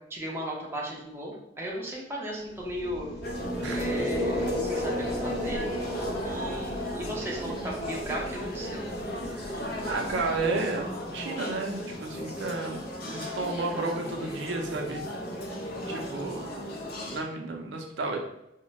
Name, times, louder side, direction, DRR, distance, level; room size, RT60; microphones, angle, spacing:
voice 1, 0.1-3.1 3.7-5.6 6.2-8.9, equal, 15° right, -4 dB, 0.6 m, -36 dB
sound 1, 2.7-10.8, equal, 25° left, 1.0 m, -34 dB
sound 2, 3.2-17.2, left 1 dB, 55° left, 0.5 m, -36 dB
voice 2, 9.3-15.1 15.9-18.2, right 3 dB, 75° right, 2 dB, 0.4 m, -33 dB
2.1 x 2.1 x 3.8 m, 0.85 s
head